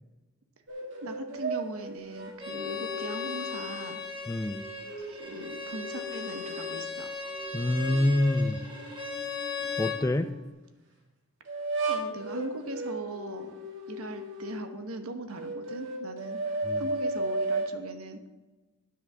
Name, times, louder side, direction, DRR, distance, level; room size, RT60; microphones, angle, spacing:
sound 1, 0.7-4.0 4.5-6.8 7.2-10.4 11.5-14.7 15.3-17.8, right 2 dB, 55° right, 2.0 m, -36 dB
voice 1, 1.0-4.0 5.0-7.1 11.9-13.6 13.9-18.2, right 2 dB, 75° right, 7 dB, 1.1 m, -40 dB
Bowed string instrument, 2.4-10.0, left 5 dB, 20° right, 1.6 m, -37 dB
voice 2, 4.3-4.6 7.5-8.6 9.8-10.3 16.6-16.8, left 1 dB, 15° left, 11 dB, 0.3 m, -26 dB
9.8 x 5.8 x 6.9 m, 1.1 s
head